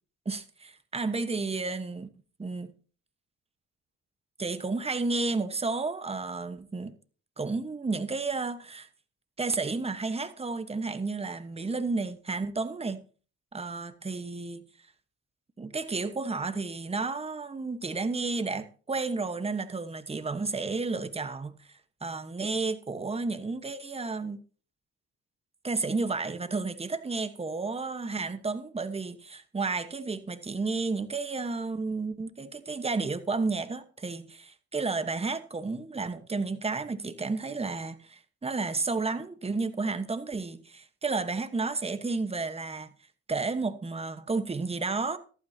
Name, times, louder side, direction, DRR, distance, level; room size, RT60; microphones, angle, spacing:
voice 1, 0.2-2.1 2.4-2.7 4.4-6.9 7.4-8.9 9.4-13.0 13.5-14.6 15.6-21.5 22.0-24.4 25.6-42.9 43.3-45.2, right 3 dB, 20° right, 1.1 m, -32 dB
14.5 x 12.0 x 2.8 m
cardioid pair, 90°, 30 cm